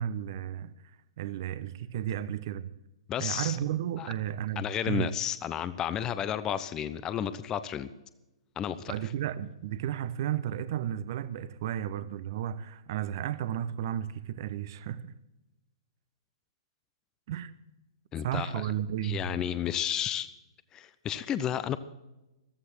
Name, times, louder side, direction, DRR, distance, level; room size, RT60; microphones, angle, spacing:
voice 1, 0.0-2.7 3.2-5.1 8.9-15.1 17.3-17.5 18.2-19.3, right 10 dB, 50° right, 1.0 m, -33 dB
voice 2, 3.1-3.6 4.0-4.1 4.6-7.9 8.6-8.9 18.1-18.7 19.0-20.3 20.7-21.8, left 9 dB, 20° left, 0.8 m, -32 dB
14.5 x 14.5 x 4.5 m
figure-of-eight pair, 115°, 3 cm